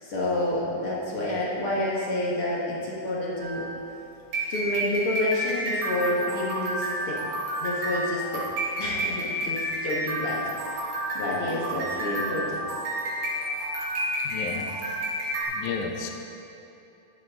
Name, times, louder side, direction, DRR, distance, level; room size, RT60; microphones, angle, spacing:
voice 1, 0.0-3.7 4.5-7.2 7.6-8.4 8.8-10.4 11.1-12.6, left 1 dB, 50° left, -5 dB, 1.9 m, -29 dB
sound 1, 3.4-15.4, right 1 dB, 85° right, 4.5 m, -30 dB
voice 2, 14.2-14.7 15.5-16.1, left 6 dB, 70° left, 2 dB, 1.9 m, -33 dB
13.5 x 11.0 x 3.8 m, 2.9 s
omnidirectional pair, 4.3 m